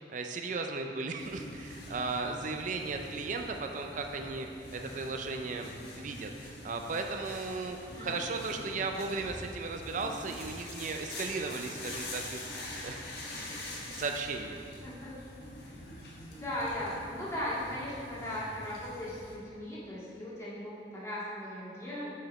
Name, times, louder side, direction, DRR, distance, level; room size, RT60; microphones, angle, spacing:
voice 1, 0.1-5.7 6.0-6.3 6.6-13.1 13.4-14.6, right 3 dB, 45° right, 4 dB, 0.4 m, -36 dB
sound 1, 1.2-19.3, left 1 dB, 60° left, 1.4 m, -45 dB
voice 2, 14.8-15.1 16.3-22.1, left 1 dB, 15° left, -9 dB, 1.8 m, -38 dB
6.6 x 6.1 x 4.1 m, 2.5 s
head